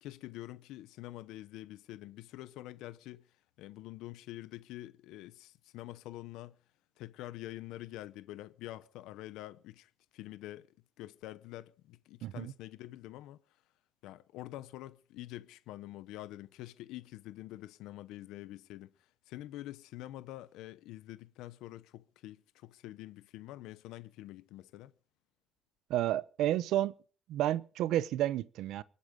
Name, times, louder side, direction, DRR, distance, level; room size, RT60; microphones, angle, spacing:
voice 1, 0.0-3.3 3.6-6.6 7.0-13.4 14.0-18.9 19.3-24.9, left 15 dB, 80° left, 0.8 m, -46 dB
voice 2, 12.2-12.5 25.9-26.9 27.3-28.8, right 13 dB, 60° right, 0.8 m, -31 dB
24.0 x 8.4 x 5.2 m
cardioid pair, 175°, 0 cm